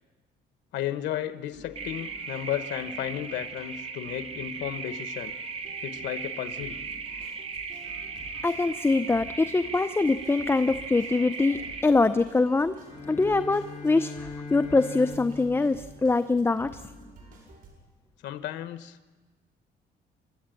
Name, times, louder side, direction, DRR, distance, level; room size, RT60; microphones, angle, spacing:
voice 1, 0.7-5.3 5.8-6.8 18.2-19.0, left 11 dB, 90° left, 11 dB, 1.0 m, -33 dB
sound 1, 1.5-17.7, right 2 dB, 50° right, 6.5 m, -51 dB
sound 2, 1.8-11.8, right 4 dB, 35° right, 1.4 m, -37 dB
voice 2, 8.4-12.8 13.1-16.8, left 3 dB, 15° left, 10 dB, 0.6 m, -24 dB
Bowed string instrument, 12.7-16.9, left 4 dB, 45° left, 3.9 m, -41 dB
29.5 x 13.0 x 9.0 m, 1.3 s
cardioid pair, 130°, 18 cm